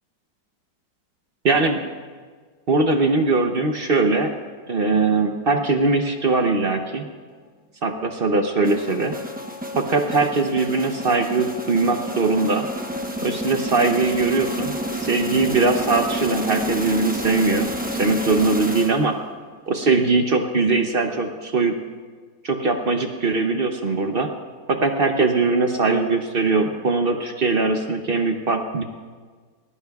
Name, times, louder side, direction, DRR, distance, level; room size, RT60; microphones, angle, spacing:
voice 1, 1.4-1.8 2.7-4.3 4.7-7.0 7.8-9.1 9.8-12.7 13.2-17.7 18.0-19.1 19.7-21.7 22.4-24.3 24.7-28.8, right 3 dB, 55° right, 5 dB, 0.6 m, -21 dB
sound 1, 8.6-19.3, equal, 10° right, 0.4 m, -30 dB
19.5 x 19.5 x 2.4 m, 1.5 s
omnidirectional pair, 2.0 m